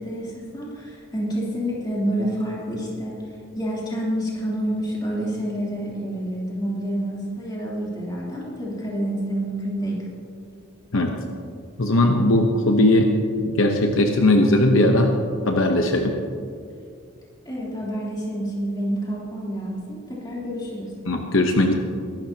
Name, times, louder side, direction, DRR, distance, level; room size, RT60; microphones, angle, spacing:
voice 1, 0.0-3.2 3.5-10.0 17.4-20.9, equal, 20° left, -6 dB, 3.2 m, -28 dB
voice 2, 11.8-13.1 13.4-15.1 15.4-16.1 21.1-21.7, left 1 dB, 65° left, 3 dB, 1.0 m, -18 dB
22.0 x 12.5 x 2.9 m, 2.3 s
head